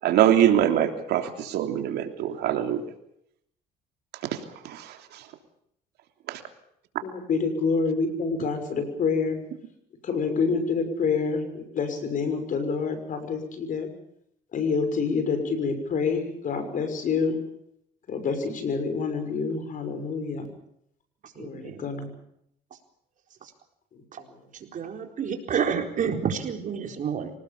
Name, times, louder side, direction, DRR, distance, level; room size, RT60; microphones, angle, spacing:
voice 1, 0.0-2.8 4.6-4.8 6.3-6.4, right 10 dB, 75° right, 6 dB, 3.2 m, -23 dB
voice 2, 7.0-9.4 10.1-11.4 11.7-13.9 14.5-17.4 18.1-20.4 21.4-22.1, left 5 dB, 50° left, 9 dB, 6.3 m, -27 dB
voice 3, 21.4-21.8 24.1-24.2 24.7-27.3, right 7 dB, 50° right, 5 dB, 4.2 m, -29 dB
25.5 x 19.0 x 7.2 m, 0.73 s
cardioid pair, 110°, 17 cm